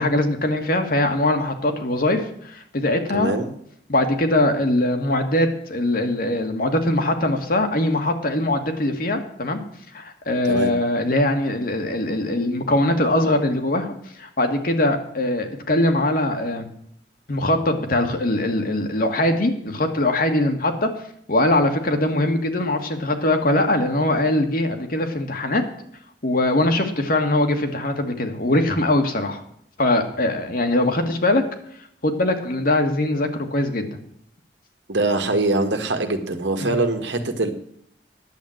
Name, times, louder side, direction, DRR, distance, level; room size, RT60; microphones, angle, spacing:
voice 1, 0.0-3.3 3.9-9.6 9.9-16.7 17.3-20.9 21.3-25.6 26.2-29.4 29.8-31.4 32.0-33.9 36.6-36.8, left 1 dB, 55° left, 5 dB, 1.8 m, -21 dB
voice 2, 3.1-3.5 10.4-10.7 34.9-37.5, right 2 dB, 85° right, 6 dB, 1.7 m, -23 dB
10.5 x 7.8 x 7.7 m, 0.67 s
head